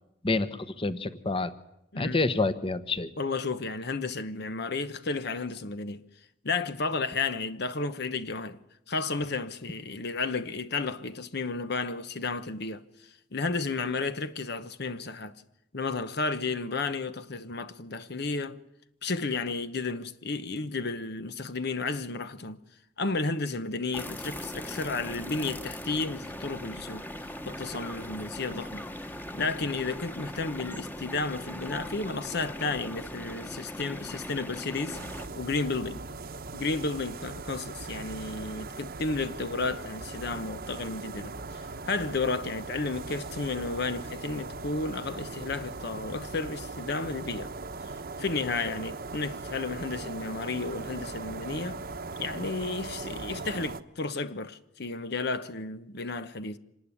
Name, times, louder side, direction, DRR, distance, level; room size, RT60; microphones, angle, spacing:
voice 1, 0.2-1.5 2.0-3.1, left 3 dB, 30° left, 1.1 m, -28 dB
voice 2, 3.2-6.0 6.4-8.6 8.9-15.3 15.7-18.6 19.0-22.6 23.0-27.1 27.4-28.9 29.3-35.0 35.4-36.0 36.5-47.5 47.8-47.9 48.2-51.8 52.2-56.6, left 3 dB, 60° left, 1.0 m, -32 dB
sound 1, 23.9-35.3, left 1 dB, 10° left, 1.3 m, -40 dB
sound 2, 34.9-53.8, right 3 dB, 55° right, 1.1 m, -39 dB
26.0 x 19.0 x 10.0 m
head